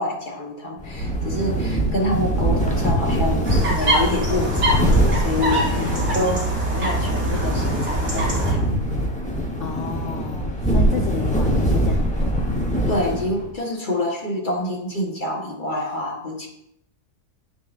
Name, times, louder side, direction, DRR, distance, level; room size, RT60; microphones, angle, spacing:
voice 1, 0.0-8.8 11.0-11.1 12.9-16.5, left 1 dB, 35° left, -1 dB, 1.0 m, -27 dB
sound 1, 0.8-13.5, right 1 dB, 10° left, 0.5 m, -23 dB
sound 2, 1.0-9.0, right 2 dB, 75° right, 1.5 m, -30 dB
sound 3, 3.4-8.5, equal, 40° right, 3.4 m, -25 dB
voice 2, 5.8-6.4 9.6-12.5, left 6 dB, 60° left, 2 dB, 0.8 m, -32 dB
8.3 x 6.5 x 2.4 m, 0.76 s
omnidirectional pair, 1.8 m